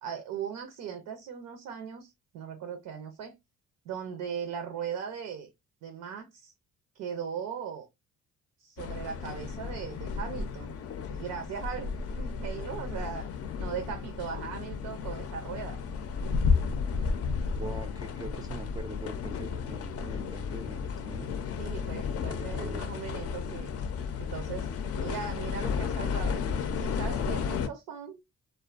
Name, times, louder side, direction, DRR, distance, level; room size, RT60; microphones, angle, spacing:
voice 1, 0.0-3.3 3.9-5.5 5.8-6.5 6.9-7.9 8.6-10.8 11.1-13.3 13.6-15.8 21.6-23.7 24.2-28.2, right 7 dB, 90° right, 0.6 m, -39 dB
sound 1, 8.8-27.7, left 5 dB, 55° left, 0.4 m, -33 dB
voice 2, 17.6-21.3 22.2-22.8, right 1 dB, 15° right, 0.3 m, -42 dB
2.4 x 2.2 x 2.3 m
cardioid pair, 90°, 30 cm